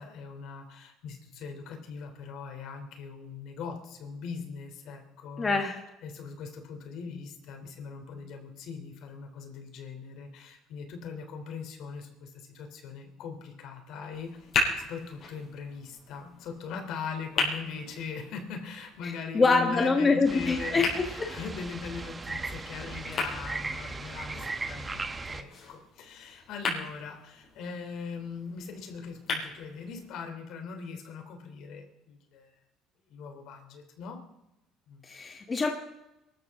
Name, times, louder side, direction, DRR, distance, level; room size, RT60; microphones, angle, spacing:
voice 1, 0.0-5.6 6.0-14.5 14.8-32.6 33.1-34.2 34.9-35.0, left 5 dB, 65° left, 5 dB, 3.3 m, -40 dB
voice 2, 5.4-5.8 19.3-20.9 35.1-35.7, left 4 dB, 25° left, 3 dB, 1.5 m, -24 dB
sound 1, 14.1-30.1, left 3 dB, 45° left, 6.1 m, -37 dB
sound 2, 20.2-25.4, right 3 dB, 20° right, 1.1 m, -37 dB
23.5 x 13.5 x 3.7 m, 0.92 s
cardioid pair, 115°, 0 cm